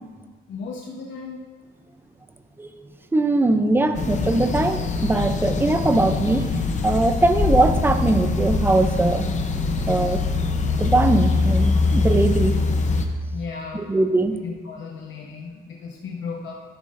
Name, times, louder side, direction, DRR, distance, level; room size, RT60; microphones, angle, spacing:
voice 1, 0.5-1.4 13.3-13.8 14.3-16.5, left 5 dB, 60° left, -2 dB, 1.0 m, -35 dB
voice 2, 3.1-6.5 6.8-9.3 9.9-10.2 10.8-12.5 13.7-14.4, right 2 dB, 10° right, 8 dB, 0.4 m, -21 dB
sound 1, 3.9-13.1, left 4 dB, 35° left, 0.6 m, -23 dB
11.0 x 9.6 x 2.5 m, 1.5 s
wide cardioid pair, 175°, 21 cm